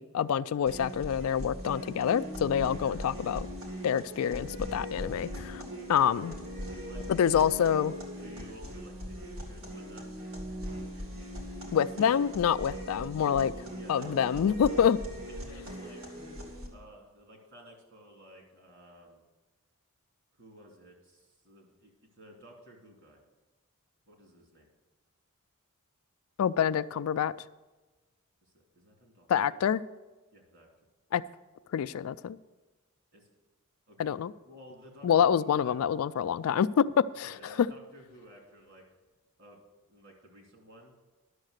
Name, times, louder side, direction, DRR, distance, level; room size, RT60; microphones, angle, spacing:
voice 1, 0.0-3.5 3.8-5.6 5.9-6.4 7.1-7.9 11.7-13.5 13.9-15.0 26.4-27.3 29.3-29.8 31.1-31.2 31.7-32.4 34.0-34.3 35.0-37.4, left 8 dB, 70° left, 0.3 m, -26 dB
sound 1, 0.7-16.7, equal, 70° right, 2.4 m, -40 dB
voice 2, 7.3-7.7 8.2-10.2 11.7-12.2 13.5-14.4 15.1-16.2 16.7-19.2 20.4-23.2 24.1-24.7 28.4-29.6 30.3-30.7 33.1-33.3 33.9-34.1 34.5-35.8 36.2-36.3 37.2-38.8 39.4-39.6 39.9-40.9, equal, 55° right, 2.7 m, -53 dB
11.5 x 6.6 x 6.5 m
head